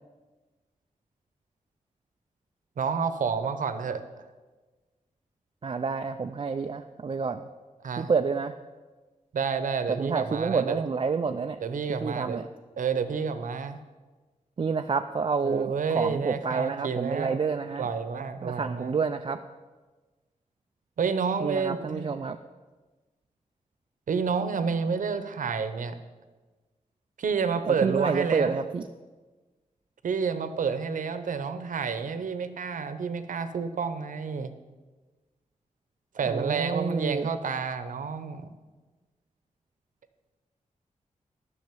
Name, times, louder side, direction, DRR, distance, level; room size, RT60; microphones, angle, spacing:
voice 1, 2.8-4.0 7.8-8.1 9.3-10.8 11.6-12.4 12.8-13.8 15.4-17.4 17.8-18.9 21.0-22.1 24.1-26.0 27.2-28.6 30.0-34.5 36.1-38.5, right 5 dB, 80° right, 10 dB, 0.9 m, -29 dB
voice 2, 5.6-7.5 8.0-8.6 9.9-11.6 11.9-12.5 14.6-17.9 18.4-19.4 21.4-22.4 27.7-28.9 36.2-37.3, right 5 dB, 40° right, 6 dB, 0.4 m, -29 dB
10.5 x 6.4 x 9.0 m, 1.3 s
wide cardioid pair, 105°, 13 cm